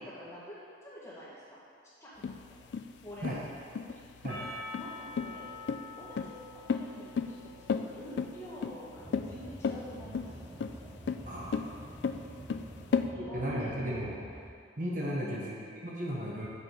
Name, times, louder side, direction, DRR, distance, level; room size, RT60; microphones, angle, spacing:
voice 1, 0.0-1.6 2.0-2.3 3.0-3.5 3.8-4.0 4.7-5.5 5.9-6.3 6.7-10.4 12.6-14.1 15.1-15.6, equal, 15° left, -8 dB, 1.5 m, -47 dB
sound 1, 2.2-13.1, left 6 dB, 60° left, 0.3 m, -34 dB
Percussion, 4.3-8.8, left 2 dB, 35° left, 1.3 m, -46 dB
sound 2, 9.0-14.5, right 1 dB, 15° right, 0.4 m, -48 dB
voice 2, 13.0-14.1 14.8-16.5, equal, 45° right, -4 dB, 1.0 m, -35 dB
6.7 x 4.9 x 5.2 m, 2.3 s
head